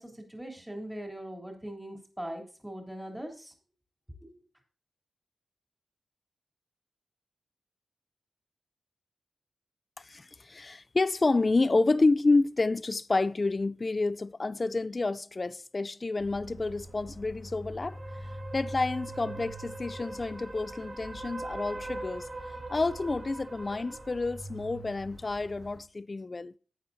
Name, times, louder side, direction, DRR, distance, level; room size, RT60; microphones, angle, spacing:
voice 1, 0.0-3.5 4.2-4.3, right 1 dB, 10° right, 3.3 m, -41 dB
voice 2, 10.0-18.0 18.5-22.3 22.7-26.5, left 3 dB, 40° left, 0.5 m, -29 dB
sound 1, 16.2-25.8, right 2 dB, 45° right, 3.1 m, -42 dB
13.5 x 8.7 x 2.7 m
cardioid pair, 45°, 0 cm